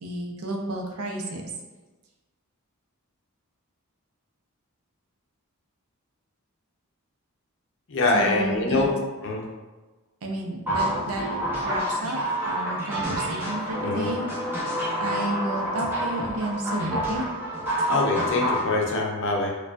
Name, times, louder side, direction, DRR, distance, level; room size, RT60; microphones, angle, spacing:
voice 1, 0.0-1.4 8.1-8.9 10.2-11.2 11.6-12.2 12.4-14.6 15.0-17.2, right 2 dB, 80° right, 1 dB, 0.6 m, -31 dB
voice 2, 7.9-8.9 9.2-9.4 13.8-14.1 17.9-19.5, left 2 dB, 60° left, 0 dB, 0.6 m, -24 dB
sound 1, 10.7-18.6, equal, 10° right, 1.0 m, -28 dB
4.6 x 2.3 x 2.4 m, 1.2 s
head